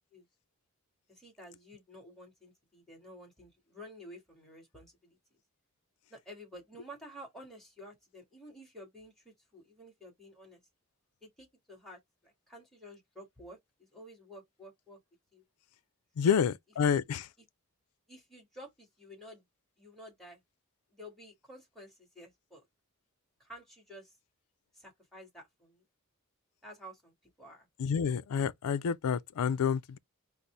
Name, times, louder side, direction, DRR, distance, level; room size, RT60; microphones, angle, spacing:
voice 1, 1.1-5.2 6.1-10.6 11.2-15.0 15.3-15.4 16.2-16.3 18.1-19.4 19.8-20.4 20.9-22.7 23.4-24.2 24.7-25.8 26.6-27.7, equal, ahead, 1.7 m, -51 dB
voice 2, 16.2-17.3 27.8-30.0, left 7 dB, 85° left, 0.4 m, -29 dB
4.0 x 2.0 x 4.4 m
head